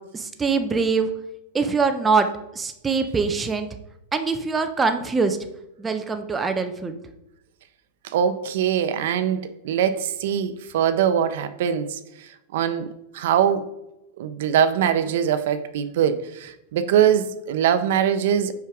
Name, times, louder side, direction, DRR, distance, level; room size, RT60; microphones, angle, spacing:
voice 1, 0.1-1.1 1.5-2.3 2.5-3.7 4.1-5.4 5.8-7.0, right 4 dB, 10° right, 0.5 m, -23 dB
voice 2, 8.0-13.7 14.2-18.5, right 9 dB, 65° right, 0.6 m, -22 dB
5.9 x 4.5 x 4.8 m
supercardioid pair, 155°, 0 cm